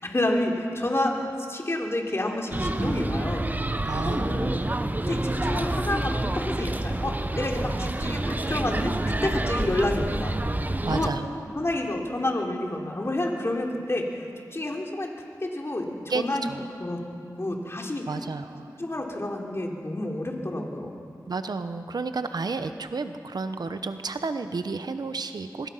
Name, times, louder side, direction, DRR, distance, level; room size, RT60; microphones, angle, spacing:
voice 1, 0.0-3.5 3.8-4.5 5.1-8.9 9.2-10.3 10.8-11.1 11.5-14.2 14.5-15.1 15.4-16.5 16.8-17.0 17.4-18.1 18.8-21.0, left 1 dB, 40° left, 0 dB, 3.4 m, -29 dB
sound 1, 2.5-11.1, right 1 dB, 25° right, 1.0 m, -28 dB
voice 2, 3.8-4.7 10.8-11.3 16.1-16.7 18.1-18.8 21.3-25.7, right 4 dB, 75° right, 9 dB, 1.0 m, -31 dB
24.0 x 20.0 x 5.7 m, 2.4 s
cardioid pair, 50°, 7 cm